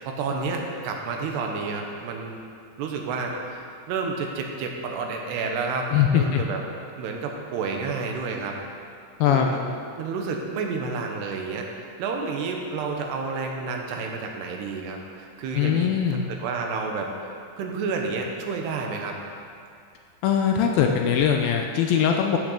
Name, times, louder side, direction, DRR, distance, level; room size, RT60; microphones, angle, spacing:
voice 1, 0.0-2.4 2.8-6.6 7.0-8.6 9.3-9.6 10.0-11.7 12.0-19.2, right 4 dB, 80° right, 2 dB, 3.2 m, -30 dB
voice 2, 5.9-6.4 9.2-9.5 15.5-16.3 20.2-22.4, left 8 dB, 80° left, 3 dB, 2.2 m, -21 dB
15.0 x 6.5 x 6.6 m, 2.3 s
omnidirectional pair, 4.7 m